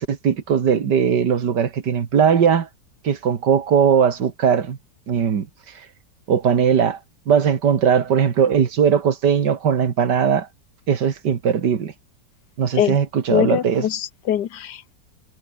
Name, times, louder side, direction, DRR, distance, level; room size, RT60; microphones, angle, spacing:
voice 1, 0.0-2.7 3.0-4.8 5.1-5.5 6.3-7.0 7.3-10.5 10.9-11.9 12.6-13.9, right 7 dB, 90° right, 2.3 m, -19 dB
voice 2, 13.3-14.9, left 10 dB, 85° left, 1.7 m, -23 dB
omnidirectional pair, 1.8 m